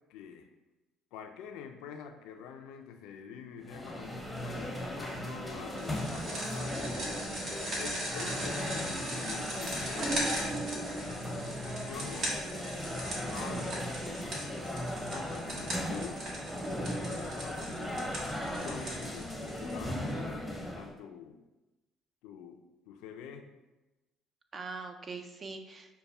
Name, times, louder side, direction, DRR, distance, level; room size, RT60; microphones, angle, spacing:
voice 1, 0.1-0.5 1.1-6.9 7.8-12.4 12.8-14.4 15.0-16.2 16.6-18.1 18.6-21.4 22.2-22.6 22.9-23.5, left 7 dB, 75° left, 5 dB, 0.4 m, -46 dB
sound 1, 3.6-20.9, equal, 5° left, 0.7 m, -37 dB
firelighter in the water, 5.8-20.1, equal, 60° right, 1.2 m, -39 dB
voice 2, 8.1-9.1 13.4-14.3 24.5-26.0, right 4 dB, 40° right, 6 dB, 0.5 m, -45 dB
6.6 x 2.2 x 2.3 m, 1.0 s
hypercardioid pair, 60°, 0 cm